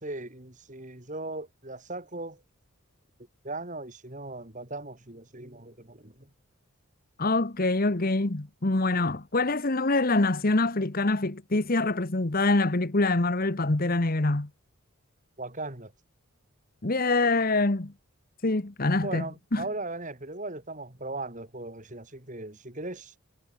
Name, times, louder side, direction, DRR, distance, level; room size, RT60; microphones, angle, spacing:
voice 1, 0.0-2.4 3.4-6.3 15.4-15.9 19.0-23.1, right 2 dB, 35° right, 3.0 m, -38 dB
voice 2, 7.2-14.5 16.8-17.9 18.4-19.6, left 2 dB, 40° left, 1.2 m, -25 dB
head